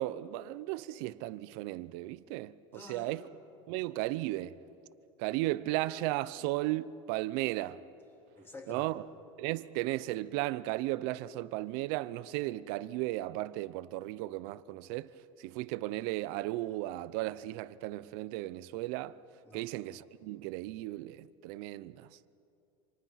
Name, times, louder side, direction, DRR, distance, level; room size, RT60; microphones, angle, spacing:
voice 1, 0.0-3.2 3.7-4.6 5.2-7.8 8.7-9.0 9.4-19.2 19.5-22.2, right 17 dB, 55° right, 0.7 m, -35 dB
voice 2, 2.7-3.2 8.4-8.9 19.4-19.7, left 2 dB, 15° left, 3.3 m, -48 dB
28.5 x 27.0 x 5.8 m
supercardioid pair, 155°, 16 cm